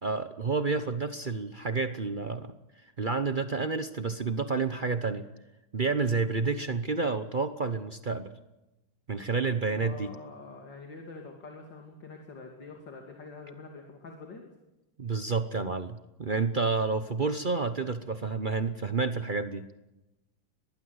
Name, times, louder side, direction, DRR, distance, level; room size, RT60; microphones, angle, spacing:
voice 1, 0.0-2.5 3.0-5.2 5.7-8.3 9.1-10.1 15.0-19.6, right 4 dB, 70° right, 10 dB, 0.4 m, -29 dB
voice 2, 9.7-14.4, left 3 dB, 55° left, 2 dB, 3.3 m, -45 dB
23.0 x 20.0 x 8.0 m, 0.98 s
omnidirectional pair, 2.4 m